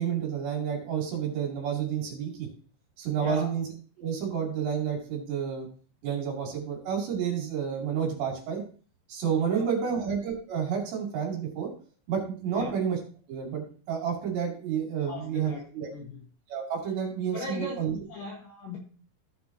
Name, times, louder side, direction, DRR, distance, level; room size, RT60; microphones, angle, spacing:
voice 1, 0.0-2.5 3.0-3.7 4.0-5.7 6.0-8.6 9.1-11.7 12.1-13.0 13.3-15.9 16.5-18.0, right 7 dB, 65° right, -1 dB, 4.8 m, -30 dB
voice 2, 3.2-3.5 9.5-9.7 12.6-12.7 15.1-15.6 15.9-16.2 17.3-18.8, left 3 dB, 60° left, -2 dB, 2.4 m, -38 dB
16.0 x 6.1 x 2.8 m, 0.40 s
omnidirectional pair, 5.5 m